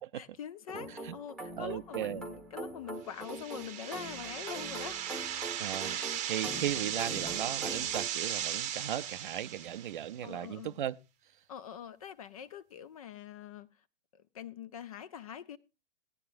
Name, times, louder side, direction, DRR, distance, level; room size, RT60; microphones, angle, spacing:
voice 1, 0.1-5.0 5.9-6.1 10.2-10.8 11.5-13.7 14.1-15.6, left 9 dB, 30° left, 0.5 m, -44 dB
sound 1, 0.7-8.1, right 1 dB, ahead, 1.1 m, -43 dB
voice 2, 1.6-2.2 5.6-6.0 6.3-11.0, right 11 dB, 45° right, 0.6 m, -37 dB
sound 2, 3.2-10.1, right 9 dB, 20° right, 0.9 m, -37 dB
17.5 x 9.9 x 2.5 m
figure-of-eight pair, 115°, 37 cm